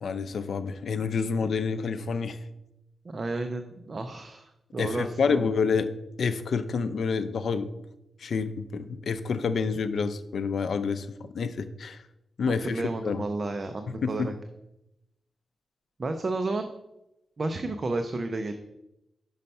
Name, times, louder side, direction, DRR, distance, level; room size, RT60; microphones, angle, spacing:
voice 1, 0.0-2.4 4.8-5.9 6.2-7.7 8.2-11.1 11.3-12.0 12.4-13.2 14.0-14.3, left 5 dB, 70° left, 11 dB, 0.5 m, -28 dB
voice 2, 3.0-5.4 12.6-14.3 16.0-16.7 17.4-18.5, right 2 dB, 40° right, 7 dB, 0.4 m, -32 dB
5.6 x 5.3 x 5.3 m, 0.90 s
wide cardioid pair, 120°, 0 cm